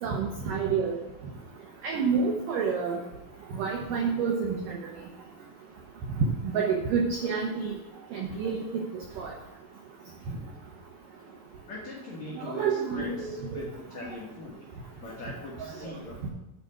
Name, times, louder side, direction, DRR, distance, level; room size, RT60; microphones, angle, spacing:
voice 1, 0.0-1.0 1.8-3.0 3.5-4.8 6.4-7.7 8.1-8.6 9.2-9.3 12.4-13.6 15.8-15.9, right 5 dB, 85° right, 0 dB, 1.9 m, -28 dB
voice 2, 11.7-12.7 12.9-13.7 13.9-14.6 15.0-16.3, left 2 dB, 60° left, -4 dB, 1.8 m, -40 dB
8.9 x 4.7 x 7.6 m, 0.94 s
omnidirectional pair, 5.2 m